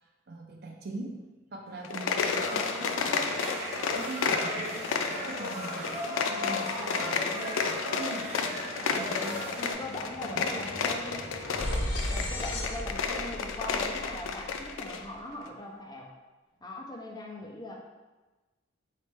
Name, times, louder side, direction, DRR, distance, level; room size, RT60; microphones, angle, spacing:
voice 1, 0.3-1.1 1.5-3.3 3.7-8.2 8.9-9.7 10.2-10.9 12.2-12.4, right 2 dB, 55° right, 1 dB, 0.6 m, -42 dB
sound 1, 1.8-15.0, left 5 dB, 90° left, 0.4 m, -32 dB
sound 2, 2.1-9.7, equal, 35° right, 1.4 m, -37 dB
voice 2, 4.4-4.8 9.6-11.4 12.1-16.1 16.6-17.8, left 1 dB, 20° left, 0 dB, 0.5 m, -41 dB
sound 3, 8.4-8.6 8.9-15.1, equal, 65° left, 0.7 m, -37 dB
4.1 x 3.2 x 3.3 m, 1.2 s
head